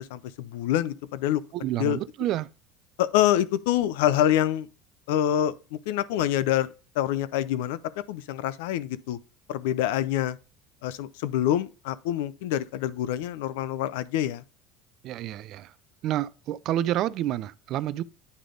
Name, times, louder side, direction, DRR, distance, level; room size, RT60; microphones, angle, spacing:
voice 1, 0.0-1.4 1.8-2.0 3.0-4.7 5.1-6.7 7.0-9.2 9.5-10.4 10.8-14.4, left 12 dB, 85° left, 0.5 m, -26 dB
voice 2, 1.5-2.5 15.0-15.7 16.0-18.0, right 13 dB, 55° right, 0.4 m, -29 dB
9.5 x 3.4 x 3.7 m
supercardioid pair, 120°, 0 cm